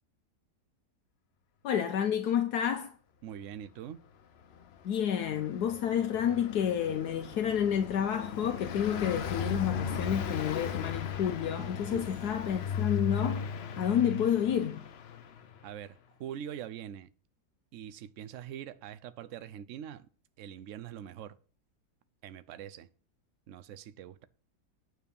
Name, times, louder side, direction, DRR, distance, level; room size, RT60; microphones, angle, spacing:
voice 1, 1.6-2.9 4.8-13.5 13.8-14.8, left 9 dB, 75° left, 1.3 m, -30 dB
voice 2, 3.2-4.0 11.9-12.3 15.6-17.1 17.7-20.1 20.4-21.4 22.2-22.9 23.5-24.3, right 10 dB, 60° right, 0.9 m, -43 dB
Car passing by, 4.6-15.6, left 6 dB, 60° left, 0.7 m, -37 dB
9.2 x 4.7 x 6.9 m
omnidirectional pair, 1.7 m